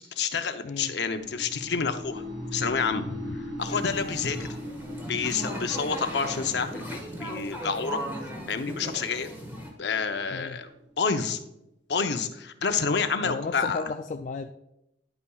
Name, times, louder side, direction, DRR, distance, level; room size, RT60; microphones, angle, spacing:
voice 1, 0.2-2.2 2.5-3.1 3.6-4.5 5.1-8.0 8.5-9.3 9.8-10.7 11.0-11.4 11.9-13.8, left 5 dB, 65° left, 7 dB, 0.7 m, -28 dB
sound 1, 1.1-11.1, left 1 dB, 85° right, 3.0 m, -40 dB
sound 2, 3.6-9.7, right 1 dB, 10° right, 1.6 m, -38 dB
voice 2, 13.2-14.5, left 4 dB, 45° left, 6 dB, 0.3 m, -34 dB
10.5 x 8.4 x 2.4 m, 0.85 s
head